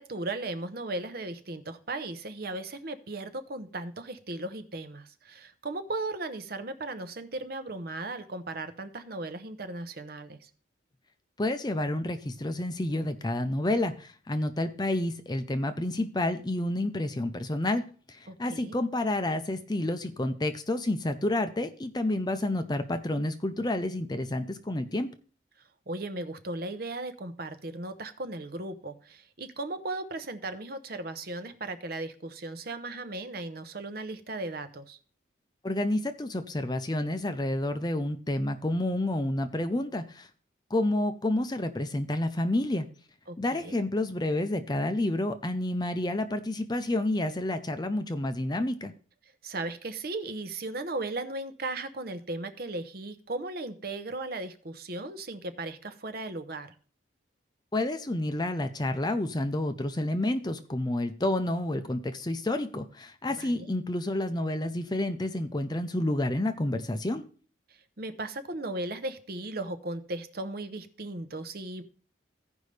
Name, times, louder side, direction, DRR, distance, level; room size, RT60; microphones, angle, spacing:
voice 1, 0.0-10.5 18.3-18.8 25.9-35.0 43.3-43.8 49.4-56.7 63.3-63.7 68.0-71.8, right 2 dB, 50° right, 10 dB, 0.8 m, -36 dB
voice 2, 11.4-17.8 18.1-25.1 35.6-40.3 40.7-42.9 43.4-48.9 57.7-67.3, left 1 dB, 20° left, 8 dB, 0.5 m, -29 dB
15.5 x 5.3 x 3.3 m, 0.41 s
head